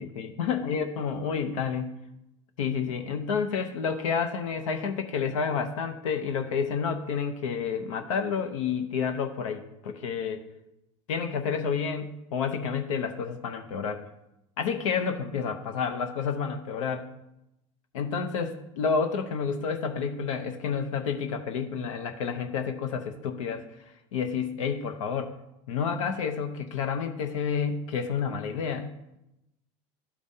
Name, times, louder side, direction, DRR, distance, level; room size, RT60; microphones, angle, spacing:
voice 1, 0.0-1.9 2.6-10.5 11.1-14.0 14.6-17.1 17.9-23.8 24.1-25.3 25.7-29.2, left 6 dB, 85° left, 6 dB, 0.7 m, -30 dB
12.5 x 5.0 x 2.7 m, 0.89 s
supercardioid pair, 105°, 16 cm